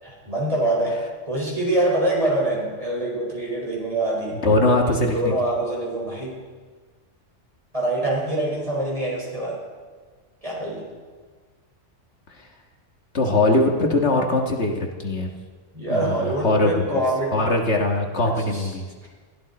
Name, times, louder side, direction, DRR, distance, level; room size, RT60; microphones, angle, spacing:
voice 1, 0.0-1.0 1.3-4.4 4.8-6.4 7.7-9.6 10.4-10.8 15.7-17.4 18.5-18.7, right 1 dB, 30° right, -3 dB, 5.0 m, -25 dB
voice 2, 4.4-5.3 13.1-15.3 15.9-17.0 17.3-18.9, left 2 dB, 65° left, 2 dB, 1.8 m, -21 dB
21.5 x 15.5 x 4.2 m, 1.5 s
omnidirectional pair, 1.2 m